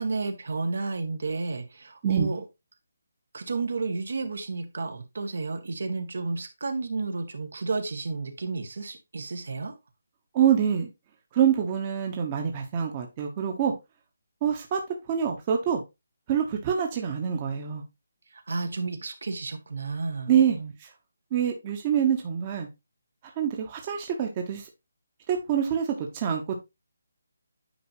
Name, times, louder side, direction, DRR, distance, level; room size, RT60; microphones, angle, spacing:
voice 1, 0.0-2.4 3.3-9.7 18.3-20.7, right 3 dB, 70° right, 6 dB, 1.8 m, -32 dB
voice 2, 10.3-10.9 11.3-13.7 14.4-14.8 15.1-15.8 16.3-17.8 20.3-20.9 21.3-22.7 23.4-24.7 25.3-26.6, right 8 dB, 25° right, 2 dB, 1.1 m, -25 dB
9.3 x 5.2 x 2.9 m, 0.23 s
hypercardioid pair, 170°, 0 cm